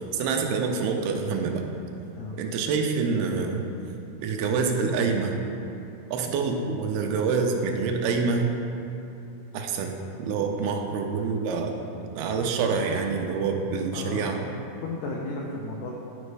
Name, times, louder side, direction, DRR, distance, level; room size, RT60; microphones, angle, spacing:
voice 1, 0.1-1.6 2.4-3.6 4.2-5.4 6.1-8.5 9.5-11.7 12.2-14.4, right 5 dB, 85° right, 3 dB, 2.6 m, -26 dB
voice 2, 13.9-14.4 14.8-15.9, left 2 dB, 85° left, -3 dB, 1.7 m, -34 dB
11.5 x 5.2 x 3.2 m, 2.8 s
omnidirectional pair, 4.3 m